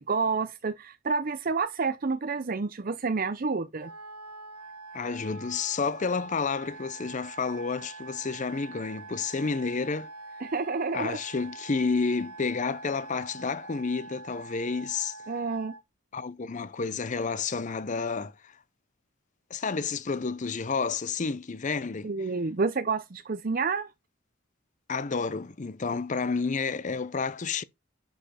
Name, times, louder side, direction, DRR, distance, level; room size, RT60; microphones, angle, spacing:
voice 1, 0.0-3.9 10.4-11.2 15.3-15.7 22.0-23.9, right 4 dB, 40° right, 0.6 m, -29 dB
Wind instrument woodwind instrument, 3.8-15.8, right 3 dB, 85° right, 1.1 m, -45 dB
voice 2, 4.9-10.1 10.9-15.2 16.1-18.6 19.5-22.1 24.9-27.6, left 4 dB, 35° left, 0.5 m, -30 dB
10.5 x 5.1 x 4.3 m
head